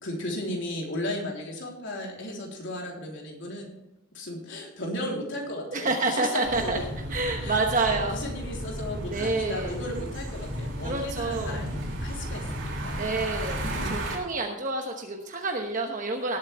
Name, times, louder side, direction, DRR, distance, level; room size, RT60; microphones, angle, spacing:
voice 1, 0.0-3.7 4.1-6.8 7.4-11.7 12.0-13.2 13.6-13.9, left 1 dB, 60° left, -2 dB, 3.7 m, -35 dB
voice 2, 5.7-6.8 7.1-8.2 9.1-9.7 10.8-11.6 13.0-16.4, right 3 dB, 40° right, 2 dB, 1.1 m, -28 dB
sound 1, 6.4-14.2, equal, 60° right, 3.0 m, -34 dB
18.0 x 8.7 x 3.5 m, 0.88 s
head